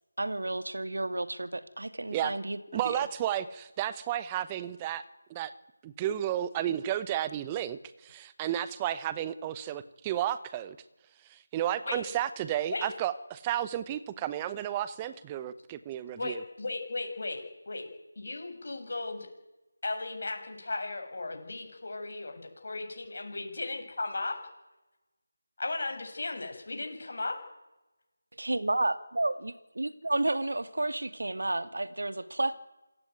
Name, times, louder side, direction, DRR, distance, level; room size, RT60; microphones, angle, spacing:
voice 1, 0.2-2.6 2.8-3.0 28.3-32.5, right 2 dB, 70° right, 10 dB, 2.4 m, -31 dB
voice 2, 2.7-5.0 5.3-5.5 5.8-10.8 11.3-16.4, right 11 dB, 15° right, 14 dB, 0.8 m, -32 dB
voice 3, 16.2-17.9 18.2-19.3 19.8-24.4 25.6-27.3, left 3 dB, 50° left, 4 dB, 7.8 m, -36 dB
27.5 x 17.5 x 9.5 m, 1.0 s
figure-of-eight pair, 165°, 0 cm